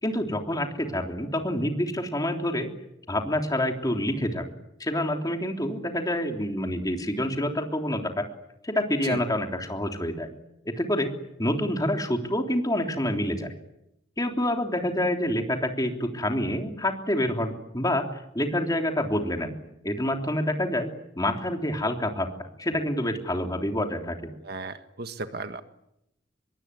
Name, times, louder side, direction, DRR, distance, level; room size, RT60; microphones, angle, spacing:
voice 1, 0.0-2.7 3.1-4.5 4.8-8.2 8.6-10.3 10.6-11.1 11.4-13.5 14.2-19.6 19.8-20.9 21.2-22.3 22.6-24.2, left 1 dB, 20° left, 4 dB, 3.4 m, -27 dB
voice 2, 24.4-25.6, right 3 dB, 55° right, 9 dB, 1.7 m, -35 dB
25.0 x 22.5 x 9.7 m, 0.81 s
head